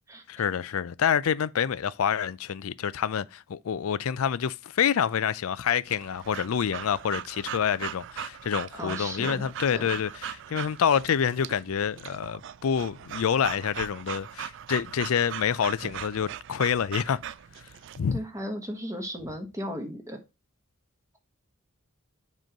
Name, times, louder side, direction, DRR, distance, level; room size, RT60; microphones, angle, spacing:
voice 1, 0.3-17.2 18.0-18.2, left 7 dB, 75° left, 0.4 m, -27 dB
Breathing / Dog, 5.9-18.0, right 10 dB, 55° right, 0.3 m, -40 dB
voice 2, 8.8-9.5 9.7-9.8 18.1-20.2, equal, 15° right, 1.2 m, -35 dB
7.6 x 3.1 x 5.1 m
head